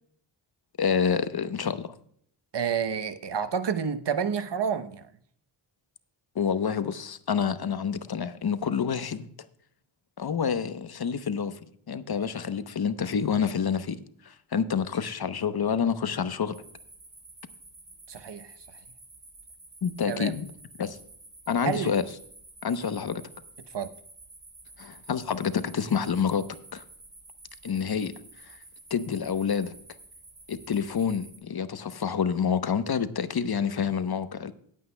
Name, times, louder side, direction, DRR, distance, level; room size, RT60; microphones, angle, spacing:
voice 1, 0.8-1.9 6.3-9.3 10.2-11.6 11.9-14.0 14.2-16.6 19.8-20.5 20.8-21.0 21.5-22.0 22.6-23.2 24.8-26.4 26.7-26.8 27.6-28.1 28.4-28.6 28.9-29.7 30.5-34.5, left 6 dB, 50° left, 12 dB, 0.9 m, -28 dB
voice 2, 2.5-5.1 18.1-18.5 20.1-20.4 21.6-21.9 23.7-23.9, right 7 dB, 55° right, 11 dB, 0.9 m, -29 dB
sound 1, 16.5-31.4, right 2 dB, 40° right, 3.4 m, -51 dB
18.0 x 8.5 x 2.2 m, 0.64 s
cardioid pair, 50°, 49 cm